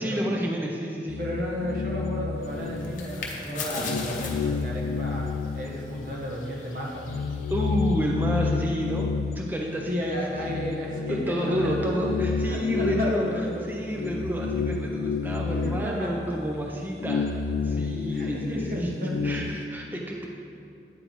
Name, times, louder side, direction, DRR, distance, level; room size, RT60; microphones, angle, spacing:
voice 1, 0.0-1.2 7.5-10.2 11.1-13.3 13.6-20.3, equal, 10° right, -1 dB, 0.4 m, -30 dB
sound 1, 1.1-3.3 3.7-6.4 6.8-19.6, left 5 dB, 60° left, 0.3 m, -30 dB
voice 2, 1.2-7.1 9.9-12.0 12.5-13.8 15.2-16.4 18.1-19.2, equal, 50° right, -2 dB, 1.1 m, -33 dB
sound 2, 2.4-8.1, left 3 dB, 45° left, 0.7 m, -39 dB
8.9 x 3.9 x 4.5 m, 2.6 s
head